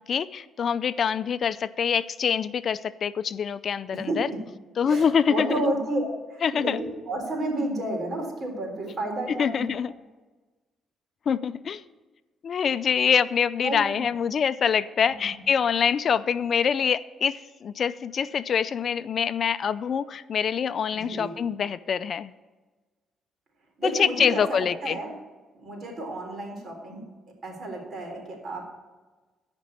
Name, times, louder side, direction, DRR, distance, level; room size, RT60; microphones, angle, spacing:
voice 1, 0.1-4.3 4.8-5.5 6.4-6.8 9.4-9.9 11.3-11.8 12.4-22.3 23.8-25.0, left 7 dB, 55° left, 15 dB, 0.4 m, -25 dB
voice 2, 4.9-9.7 13.6-14.0 15.1-15.3 20.9-21.3 23.8-25.1 25.6-27.0 27.4-28.6, right 1 dB, 55° right, 1 dB, 3.8 m, -31 dB
14.0 x 5.3 x 8.5 m, 1.3 s
cardioid pair, 90°, 0 cm